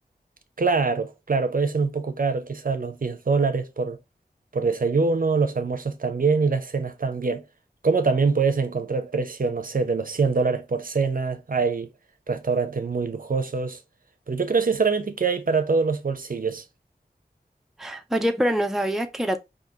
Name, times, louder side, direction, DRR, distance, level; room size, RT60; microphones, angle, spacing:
voice 1, 0.6-4.0 4.5-7.4 7.8-11.9 12.3-13.8 14.3-16.6, right 4 dB, 60° right, 0.6 m, -24 dB
voice 2, 17.8-19.4, equal, ahead, 0.5 m, -25 dB
3.7 x 2.6 x 2.7 m
wide cardioid pair, 60°, 17 cm